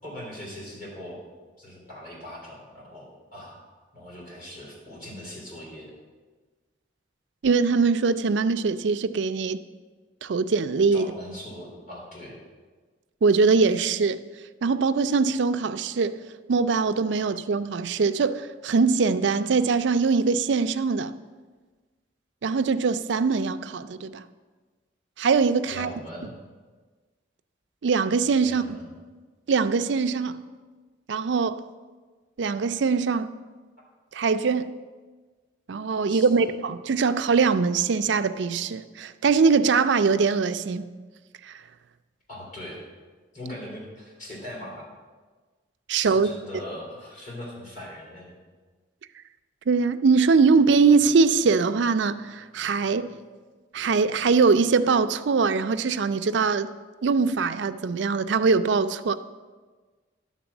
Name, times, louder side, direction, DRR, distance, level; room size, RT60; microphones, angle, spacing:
voice 1, 0.0-1.2 1.6-3.6 3.9-5.9 10.9-12.4 25.7-26.3 28.4-28.9 36.1-36.4 42.3-42.8 43.3-44.9 46.0-48.4, left 1 dB, 40° left, 2.9 m, -40 dB
voice 2, 7.4-9.6 10.2-11.1 13.2-14.2 14.6-16.2 16.5-21.1 22.4-24.2 25.2-25.9 27.8-28.8 29.5-30.4 31.1-31.6 32.4-33.3 34.1-34.7 35.7-40.9 41.5-41.6 45.9-46.3 49.7-53.1 53.7-56.7 57.0-59.2, right 4 dB, 70° right, 0.4 m, -22 dB
11.0 x 4.1 x 7.1 m
head